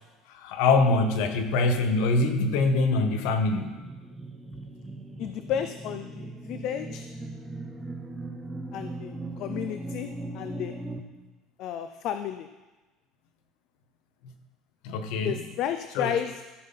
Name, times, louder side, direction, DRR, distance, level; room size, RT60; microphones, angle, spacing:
voice 1, 0.3-3.8 14.8-15.4 15.9-16.2, left 3 dB, 75° left, 7 dB, 1.2 m, -24 dB
sound 1, 2.7-11.0, right 2 dB, 10° right, 0.7 m, -39 dB
voice 2, 5.2-7.1 8.7-10.1 10.3-10.7 11.6-12.5 15.2-16.4, left 9 dB, 50° left, 9 dB, 0.4 m, -32 dB
14.0 x 5.8 x 5.6 m, 1.1 s
cardioid pair, 160°, 0 cm